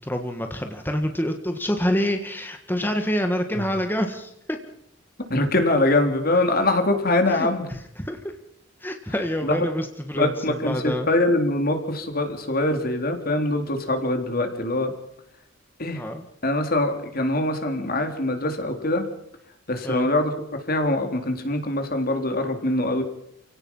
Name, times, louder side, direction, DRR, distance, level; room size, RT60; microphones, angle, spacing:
voice 1, 0.0-4.3 7.3-7.5 8.0-8.2 8.8-11.1 15.9-16.2 19.8-20.1, equal, 10° left, 5 dB, 1.7 m, -27 dB
voice 2, 5.3-7.6 9.4-9.7 10.1-15.0 15.8-16.0 16.4-19.1 19.7-20.3 20.7-23.0, left 2 dB, 50° left, 5 dB, 3.7 m, -23 dB
29.0 x 17.5 x 5.6 m, 0.72 s
head